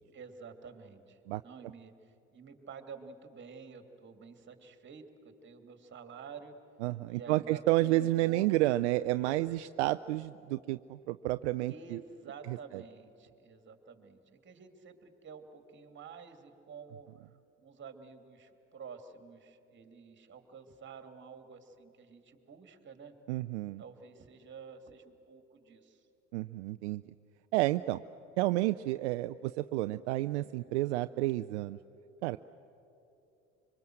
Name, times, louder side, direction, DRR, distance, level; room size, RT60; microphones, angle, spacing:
voice 1, 0.1-1.9 2.3-6.6 7.1-8.7 11.7-17.1 17.6-23.1 23.8-26.1, right 5 dB, 30° right, 7 dB, 2.5 m, -50 dB
voice 2, 6.8-12.0 12.5-12.8 23.3-23.8 26.3-27.1 27.5-28.0 28.4-31.8 32.2-32.4, right 17 dB, 70° right, 12 dB, 0.5 m, -30 dB
25.0 x 24.0 x 7.8 m, 3.0 s
hypercardioid pair, 65°, 35 cm